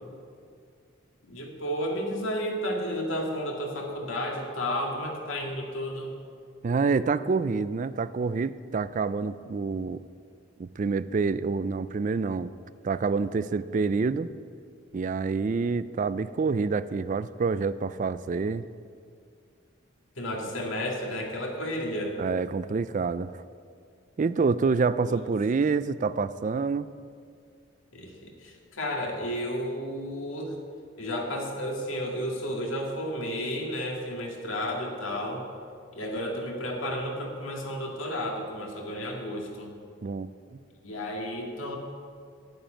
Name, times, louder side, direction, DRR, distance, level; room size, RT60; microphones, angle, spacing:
voice 1, 1.2-6.1 20.2-22.2 25.0-25.2 27.9-30.6 31.0-35.4 35.9-39.7 40.8-41.8, equal, 85° left, 0 dB, 2.1 m, -32 dB
voice 2, 6.6-10.0 10.6-12.5 12.8-14.3 14.9-18.6 22.2-23.4 24.2-26.9 40.0-40.3, right 4 dB, 40° right, 15 dB, 0.3 m, -27 dB
9.0 x 8.9 x 9.0 m, 2.2 s
head